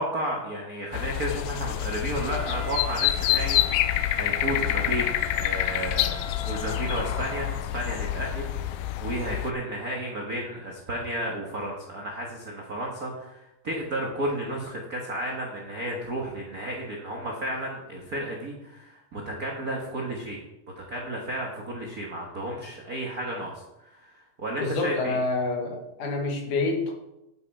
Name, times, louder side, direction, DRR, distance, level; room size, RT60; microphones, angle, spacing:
voice 1, 0.0-20.4 20.8-25.2, right 1 dB, 85° right, -1 dB, 0.8 m, -33 dB
sound 1, 0.9-9.5, left 13 dB, 80° left, 2.0 m, -27 dB
Wind instrument woodwind instrument, 2.1-7.5, left 3 dB, 50° left, 3.7 m, -41 dB
voice 2, 24.6-26.9, left 3 dB, 65° left, 2 dB, 3.0 m, -27 dB
9.8 x 9.0 x 4.6 m, 0.91 s
omnidirectional pair, 4.2 m